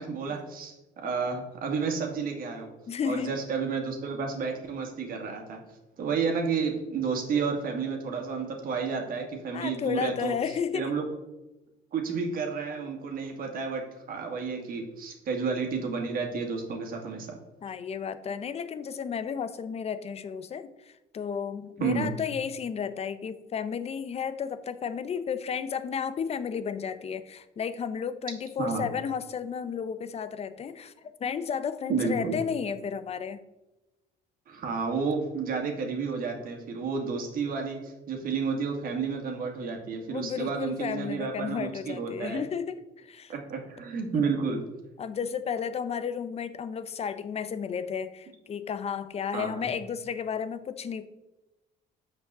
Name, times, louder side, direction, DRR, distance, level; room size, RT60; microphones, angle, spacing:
voice 1, 0.0-2.7 3.0-5.6 6.0-10.3 10.7-11.1 11.9-13.8 14.1-17.4 21.8-22.1 28.6-28.9 31.9-32.4 34.5-42.5 43.3-44.6 49.3-49.7, right 5 dB, 60° right, 3 dB, 2.0 m, -31 dB
voice 2, 2.9-3.3 9.5-10.9 17.6-30.9 31.2-33.4 40.1-43.3 44.1-44.3 45.0-51.1, left 7 dB, 40° left, 12 dB, 0.7 m, -33 dB
6.3 x 5.4 x 6.8 m, 1.0 s
cardioid pair, 110°, 17 cm